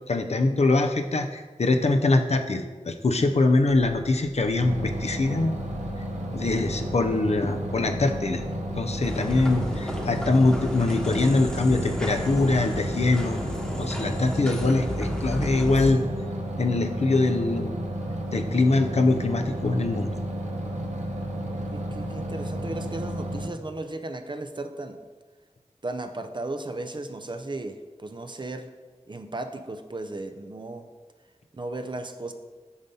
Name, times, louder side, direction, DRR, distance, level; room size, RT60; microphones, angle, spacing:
voice 1, 0.1-5.6 6.3-8.4 8.8-13.4 13.8-16.0 16.6-17.7 18.3-20.1, left 2 dB, 65° left, 6 dB, 0.5 m, -23 dB
sound 1, 3.7-12.5, left 1 dB, 65° right, 1.9 m, -44 dB
sound 2, 4.6-23.5, right 1 dB, 80° right, 0.7 m, -32 dB
sound 3, 9.0-15.9, equal, 5° left, 1.0 m, -33 dB
voice 2, 21.5-25.0 25.8-28.7 29.1-30.9 31.5-32.3, right 2 dB, 40° right, 7 dB, 0.5 m, -35 dB
7.0 x 5.3 x 2.8 m, 1.3 s
wide cardioid pair, 50°, 12 cm